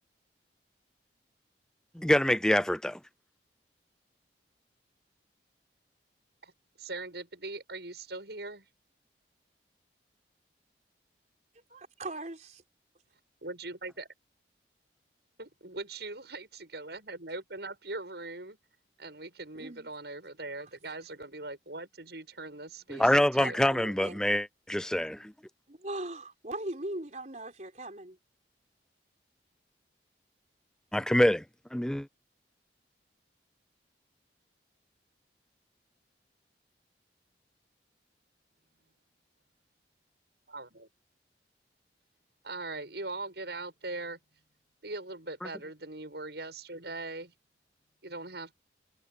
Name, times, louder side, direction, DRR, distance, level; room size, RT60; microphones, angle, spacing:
voice 1, 2.0-3.0 22.9-25.3 30.9-31.4 31.7-32.1, left 1 dB, 5° left, 0.3 m, -25 dB
voice 2, 6.8-8.7 13.4-14.1 15.4-18.6 19.0-23.6 38.8-38.9 40.5-40.9 42.4-44.2 44.8-47.3 48.0-48.5, right 2 dB, 70° right, 7.6 m, -41 dB
voice 3, 11.7-12.6 19.5-19.9 23.4-24.2 25.7-28.2, right 2 dB, 40° right, 4.6 m, -39 dB
head